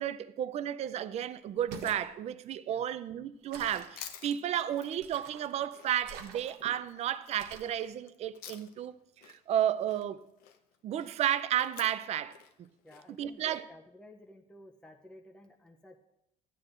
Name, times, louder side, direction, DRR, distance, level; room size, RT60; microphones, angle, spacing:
voice 1, 0.0-8.9 9.2-10.2 10.8-12.4 13.2-13.7, right 11 dB, 45° right, 0.5 m, -32 dB
sound 1, 1.5-2.1 3.5-4.0 5.0-5.5 6.0-6.7 7.4-7.8, right 5 dB, 85° right, 1.1 m, -45 dB
Chewing mastication, 3.6-8.9 9.2-13.6, left 9 dB, 80° left, 0.9 m, -52 dB
voice 2, 12.8-16.0, left 1 dB, 5° left, 0.5 m, -54 dB
14.5 x 9.7 x 2.5 m
cardioid pair, 150°, 16 cm